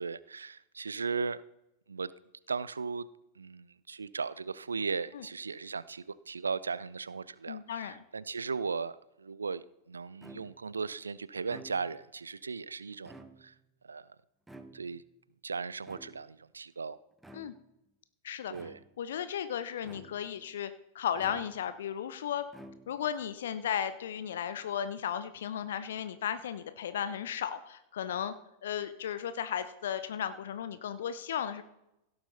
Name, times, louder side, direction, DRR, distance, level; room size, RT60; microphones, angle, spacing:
voice 1, 0.0-1.4 1.9-2.1 2.5-3.1 3.4-13.5 13.8-14.2 14.7-15.0 15.4-17.0 18.5-18.8, right 5 dB, 75° right, 19 dB, 0.3 m, -37 dB
voice 2, 7.5-8.0 17.3-17.5 18.2-18.5 19.0-22.4 22.9-28.3 28.6-31.6, left 9 dB, 60° left, 12 dB, 0.6 m, -35 dB
sound 1, 10.2-10.8 11.4-12.1 12.9-13.7 14.5-15.2 15.9-16.5 17.2-17.8 18.5-19.1 19.8-20.4 21.2-21.8 22.5-23.2, right 2 dB, 5° right, 0.9 m, -52 dB
16.5 x 8.0 x 4.0 m, 0.86 s
figure-of-eight pair, 90°, 0 cm